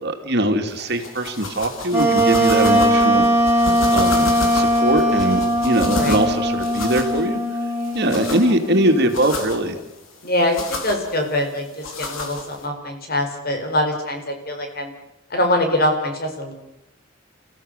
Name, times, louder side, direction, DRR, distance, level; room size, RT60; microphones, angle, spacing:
voice 1, 0.0-3.3 3.6-7.4 7.9-9.8, right 1 dB, 55° right, 4 dB, 2.6 m, -21 dB
sound 1, 0.7-12.7, left 2 dB, 90° left, 4.0 m, -32 dB
Wind instrument woodwind instrument, 1.9-9.3, equal, 10° right, 4.5 m, -20 dB
voice 2, 10.2-14.9 15.3-16.5, left 1 dB, 50° left, 4 dB, 4.7 m, -23 dB
30.0 x 15.5 x 6.7 m, 0.85 s
head